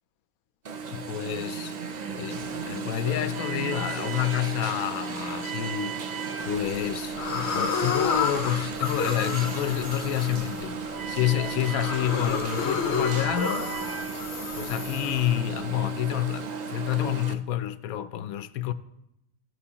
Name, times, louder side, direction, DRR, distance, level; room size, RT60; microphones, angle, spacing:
Alarm, 0.6-17.3, right 5 dB, 60° right, 0.4 m, -34 dB
voice 1, 0.9-1.7 2.1-6.0 6.4-10.8 11.1-13.7 14.6-18.7, left 12 dB, 80° left, 1.0 m, -28 dB
sound 1, 6.4-6.8 7.2-15.8, left 5 dB, 55° left, 1.0 m, -31 dB
16.0 x 6.1 x 2.8 m
omnidirectional pair, 1.5 m